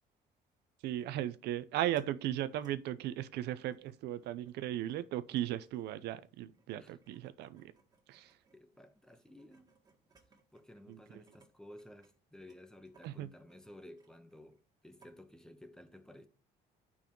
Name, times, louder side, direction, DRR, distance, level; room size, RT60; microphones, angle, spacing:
voice 1, 0.8-7.7 8.1-8.4 10.9-11.2 13.0-13.3, right 13 dB, 80° right, 0.6 m, -37 dB
sound 1, 1.0-1.1 1.6-2.1 2.5-2.7 3.0-11.5 11.8-14.7 15.0-15.1, right 4 dB, 25° right, 2.0 m, -68 dB
voice 2, 8.5-9.7 10.5-16.3, left 1 dB, 5° left, 1.0 m, -55 dB
6.9 x 5.6 x 4.6 m
cardioid pair, 110°, 17 cm